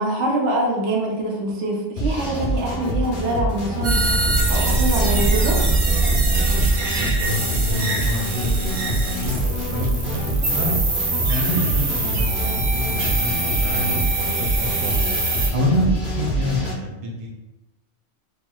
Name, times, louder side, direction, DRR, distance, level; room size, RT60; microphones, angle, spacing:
voice 1, 0.0-4.1 4.5-5.6, right 1 dB, 85° right, -1 dB, 1.0 m, -24 dB
sound 1, 2.0-16.7, right 1 dB, 50° left, 1.0 m, -26 dB
sound 2, 3.8-15.5, right 3 dB, 60° right, 0.8 m, -23 dB
voice 2, 7.0-10.8 11.3-15.1 15.5-17.3, equal, 45° right, -3 dB, 0.4 m, -27 dB
3.0 x 2.3 x 2.2 m, 1.1 s
omnidirectional pair, 1.2 m